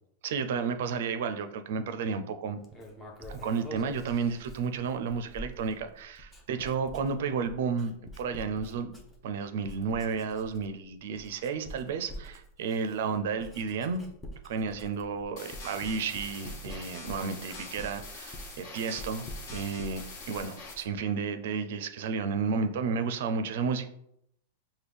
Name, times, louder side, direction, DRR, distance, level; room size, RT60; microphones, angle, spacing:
voice 1, 0.2-2.6 3.3-9.0 9.2-14.0 14.4-23.9, right 5 dB, 65° right, 9 dB, 0.4 m, -32 dB
Writing, 2.6-9.4 9.6-10.8 11.1-21.1, equal, 10° left, 0.6 m, -46 dB
sound 1, 15.4-20.7, left 3 dB, 50° left, 1.3 m, -45 dB
5.9 x 2.2 x 3.4 m, 0.74 s
supercardioid pair, 155°, 0 cm